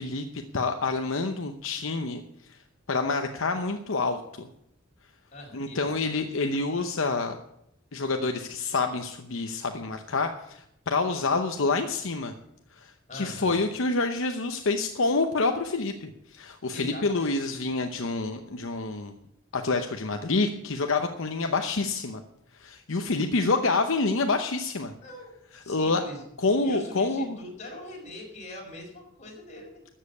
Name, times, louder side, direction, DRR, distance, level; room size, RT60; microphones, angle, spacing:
voice 1, 0.0-2.2 2.5-2.6 2.9-4.5 5.5-7.4 7.9-12.3 12.7-19.1 19.5-22.2 22.5-24.9 25.7-26.0 26.4-27.4, left 3 dB, 65° left, 5 dB, 0.8 m, -27 dB
voice 2, 5.3-6.2 13.1-13.6 16.7-17.3 25.0-25.3 25.6-26.2 26.6-29.8, left 1 dB, 35° left, -1 dB, 4.9 m, -42 dB
13.5 x 7.5 x 8.4 m, 0.79 s
head